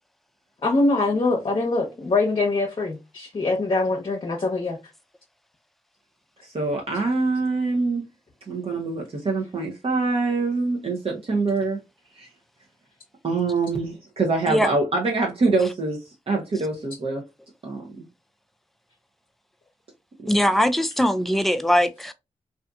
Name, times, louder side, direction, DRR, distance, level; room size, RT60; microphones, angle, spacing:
voice 1, 0.6-4.8, left 3 dB, 45° left, 0.7 m, -23 dB
voice 2, 6.4-8.0 8.5-11.8 12.2-12.3 13.2-17.2 17.6-18.0, right 3 dB, 50° right, 0.7 m, -25 dB
voice 3, 20.3-22.1, equal, ahead, 0.4 m, -21 dB
2.5 x 2.5 x 2.3 m
cardioid pair, 50°, 12 cm